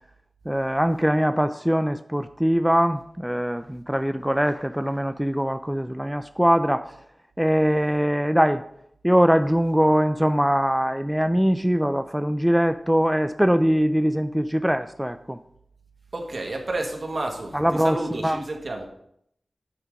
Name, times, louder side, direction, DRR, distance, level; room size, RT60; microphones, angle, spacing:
voice 1, 0.5-6.9 7.4-8.6 9.0-15.4 17.5-18.4, equal, 5° right, 10 dB, 0.3 m, -22 dB
voice 2, 16.1-18.9, right 2 dB, 60° right, 2 dB, 1.4 m, -31 dB
9.4 x 3.5 x 5.0 m, 0.72 s
wide cardioid pair, 60°, 0 cm